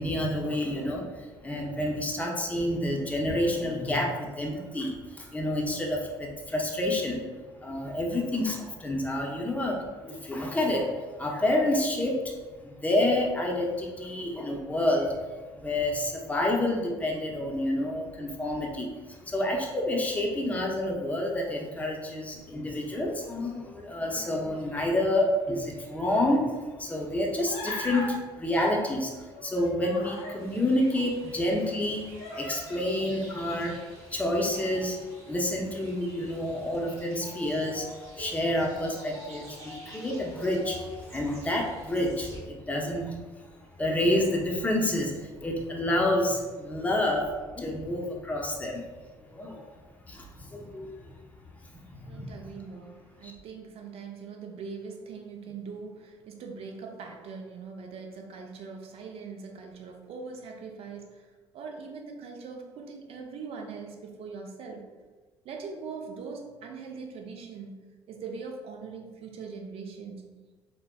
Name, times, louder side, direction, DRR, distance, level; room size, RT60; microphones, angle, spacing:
voice 1, 0.0-7.2 7.6-12.3 12.6-15.2 15.5-32.1 32.4-43.3 43.8-48.8 49.3-49.6 50.1-50.9 51.7-52.3 53.2-53.3, left 1 dB, 10° left, -1 dB, 0.6 m, -29 dB
Human voice, 27.5-28.1 29.3-30.4 31.2-31.3 32.2-32.9, left 1 dB, 60° left, 0.8 m, -38 dB
sound 1, 30.4-42.4, equal, 65° right, 0.9 m, -48 dB
voice 2, 52.1-64.9 65.4-67.8 68.1-70.3, right 5 dB, 50° right, 2 dB, 0.5 m, -41 dB
4.1 x 2.1 x 2.2 m, 1.3 s
figure-of-eight pair, 50°, 13 cm